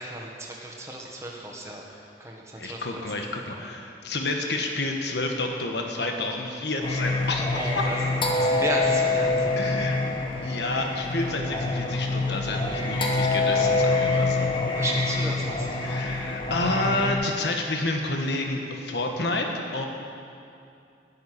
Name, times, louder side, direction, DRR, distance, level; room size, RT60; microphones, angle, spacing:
voice 1, 0.0-1.8 2.2-3.0 7.5-8.1 8.4-9.7 10.4-10.6 14.8-15.7, right 1 dB, 15° right, -2 dB, 1.5 m, -34 dB
voice 2, 2.6-7.5 9.6-10.0 10.4-14.5 15.8-19.8, left 2 dB, 65° left, 2 dB, 1.4 m, -29 dB
Singing, 6.8-17.1, left 3 dB, 25° left, 1.3 m, -25 dB
12.5 x 7.0 x 9.9 m, 2.7 s
head